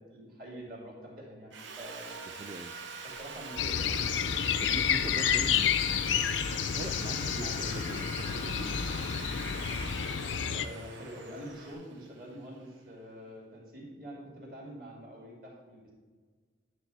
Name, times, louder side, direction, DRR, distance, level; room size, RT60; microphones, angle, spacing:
voice 1, 0.0-2.1 3.0-4.1 7.4-7.6 10.5-15.9, equal, 50° right, -3 dB, 2.3 m, -45 dB
Sawing, 1.5-12.6, right 4 dB, 90° right, 0.8 m, -44 dB
Traffic noise roadway noise, 1.7-11.7, right 2 dB, 65° right, 1.6 m, -54 dB
voice 2, 2.4-2.7 4.6-5.8 6.7-8.9, right 2 dB, 30° right, 5 dB, 0.3 m, -42 dB
sound 1, 3.6-10.7, left 8 dB, 90° left, 0.4 m, -30 dB
10.0 x 3.4 x 6.8 m, 1.5 s
head